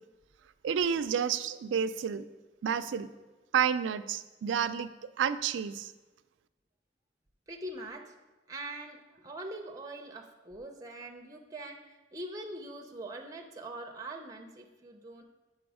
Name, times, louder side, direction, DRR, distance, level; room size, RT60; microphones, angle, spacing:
voice 1, 0.6-2.2 2.6-3.1 3.5-4.9 5.2-5.9, right 7 dB, 85° right, 12 dB, 0.3 m, -30 dB
voice 2, 7.5-8.1 8.5-15.2, right 1 dB, 20° right, 3 dB, 0.5 m, -43 dB
6.1 x 5.5 x 4.8 m, 1.1 s
head